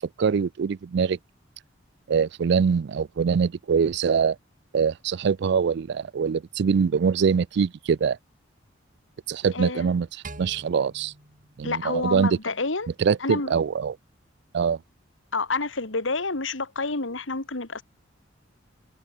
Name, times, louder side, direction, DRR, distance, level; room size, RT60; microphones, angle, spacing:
voice 1, 0.2-1.2 2.1-4.4 4.7-8.2 9.3-10.1 10.4-11.1 11.6-12.4 13.0-13.9 14.5-14.8, right 6 dB, 65° right, 0.4 m, -23 dB
voice 2, 9.5-9.9 11.6-12.9 13.2-13.5 15.3-17.8, left 3 dB, 90° left, 2.3 m, -28 dB
sound 1, 10.2-12.6, right 3 dB, 45° right, 8.0 m, -46 dB
head